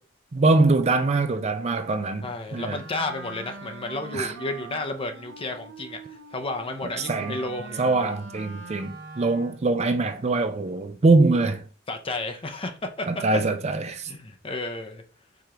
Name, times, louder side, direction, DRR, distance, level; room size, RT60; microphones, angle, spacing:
voice 1, 0.3-2.8 4.1-4.3 7.1-7.4 7.8-11.6 13.1-14.1, right 3 dB, 35° right, 0.5 m, -23 dB
voice 2, 2.2-6.0 6.3-8.1 11.9-13.2 14.1-15.0, left 2 dB, 30° left, 0.7 m, -32 dB
Wind instrument woodwind instrument, 2.5-9.7, right 3 dB, 70° right, 0.8 m, -42 dB
4.8 x 3.7 x 2.9 m
head